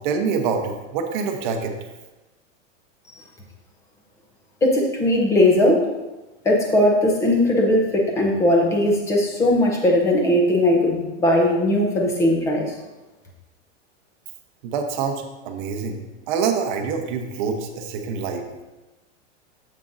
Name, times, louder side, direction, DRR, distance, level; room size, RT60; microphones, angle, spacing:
voice 1, 0.0-1.8 14.6-18.4, right 5 dB, 40° right, 4 dB, 0.9 m, -26 dB
voice 2, 4.6-5.9 6.4-12.7, left 1 dB, 10° left, 0 dB, 0.6 m, -19 dB
9.0 x 7.4 x 2.6 m, 1.1 s
supercardioid pair, 165°, 38 cm